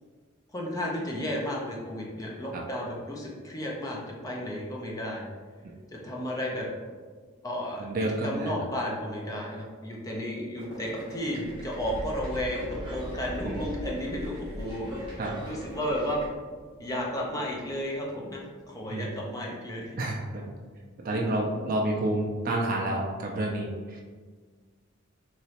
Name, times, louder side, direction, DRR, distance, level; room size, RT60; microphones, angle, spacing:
voice 1, 0.5-5.3 5.9-6.7 7.4-7.9 8.2-15.2 15.5-16.2 16.8-20.0 21.1-21.4, equal, 15° left, -3 dB, 0.5 m, -33 dB
voice 2, 7.8-8.6 13.4-13.6 15.2-15.4 18.9-19.1 20.0-20.5 21.0-24.0, right 1 dB, 40° right, -1 dB, 0.3 m, -29 dB
sound 1, 8.3-9.0 10.6-16.3, right 1 dB, 25° right, 1.0 m, -41 dB
sound 2, 11.8-18.8, equal, 55° left, 1.3 m, -43 dB
3.1 x 2.9 x 2.8 m, 1.6 s
head